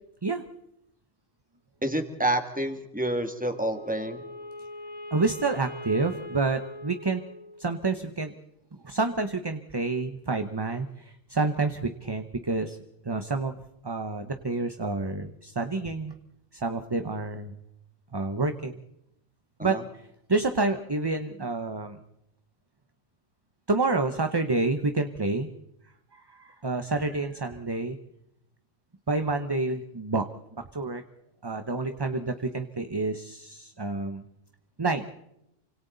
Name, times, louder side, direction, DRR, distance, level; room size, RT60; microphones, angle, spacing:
voice 1, 1.8-4.2 19.6-19.8, right 1 dB, 5° right, 5 dB, 2.3 m, -28 dB
Wind instrument woodwind instrument, 3.4-7.8, left 1 dB, 35° left, 1.4 m, -41 dB
voice 2, 5.1-7.2 7.6-8.3 8.8-12.8 13.0-13.5 13.8-16.1 16.5-17.6 18.1-18.8 19.6-19.8 20.3-22.0 23.7-25.5 26.1-28.0 29.1-30.2 30.5-31.0 31.4-34.2 34.8-35.0, right 3 dB, 20° right, 7 dB, 0.9 m, -28 dB
28.5 x 25.5 x 4.0 m, 0.83 s
omnidirectional pair, 1.3 m